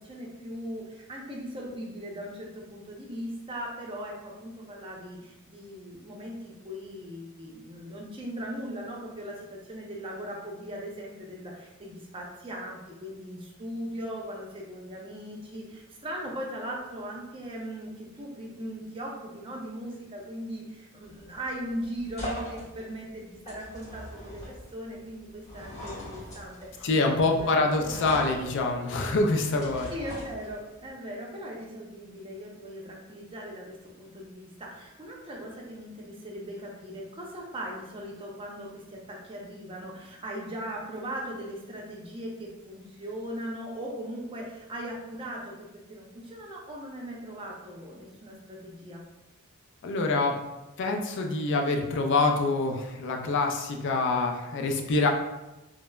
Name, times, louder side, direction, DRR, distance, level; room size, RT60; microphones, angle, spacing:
voice 1, 0.0-28.1 29.9-49.0, equal, 25° right, -2 dB, 0.5 m, -39 dB
sound 1, 21.1-30.9, equal, 30° left, 1.5 m, -42 dB
voice 2, 26.8-29.9 49.8-50.4 50.8-55.1, left 3 dB, 60° left, 3 dB, 0.4 m, -25 dB
3.2 x 2.0 x 2.2 m, 1.0 s
head